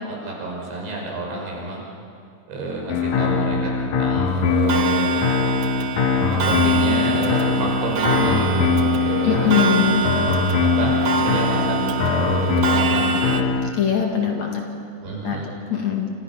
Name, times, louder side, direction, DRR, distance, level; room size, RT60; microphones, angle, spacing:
voice 1, 0.0-1.8 2.5-5.2 6.1-9.9 10.6-10.9 11.2-13.5 15.0-15.5, right 2 dB, 90° right, -2 dB, 7.7 m, -28 dB
sound 1, 2.9-13.7, left 4 dB, 65° left, 1.9 m, -21 dB
Clock, 4.7-13.4, right 6 dB, 60° right, 2.1 m, -26 dB
voice 2, 9.2-10.0 13.8-14.6 15.2-15.4 15.7-16.1, left 8 dB, 50° left, 1 dB, 3.0 m, -21 dB
29.0 x 26.5 x 5.9 m, 2.3 s
omnidirectional pair, 4.9 m